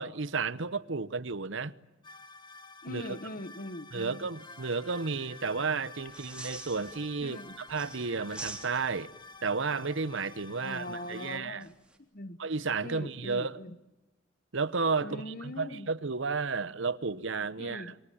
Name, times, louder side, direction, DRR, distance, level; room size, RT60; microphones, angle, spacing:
voice 1, 0.0-1.7 2.9-3.2 3.9-9.1 9.4-11.6 12.4-13.6 14.5-17.9, right 4 dB, 65° right, 1.0 m, -32 dB
sound 1, 2.0-11.4, left 3 dB, 25° left, 1.9 m, -50 dB
voice 2, 2.8-4.3 7.2-7.6 10.6-12.4 12.8-13.8 15.0-15.9 17.6-18.0, left 1 dB, 45° left, 1.5 m, -42 dB
sound 2, 6.0-7.3 7.7-9.1 11.6-12.0, right 2 dB, 5° right, 3.3 m, -45 dB
28.5 x 24.0 x 8.7 m
head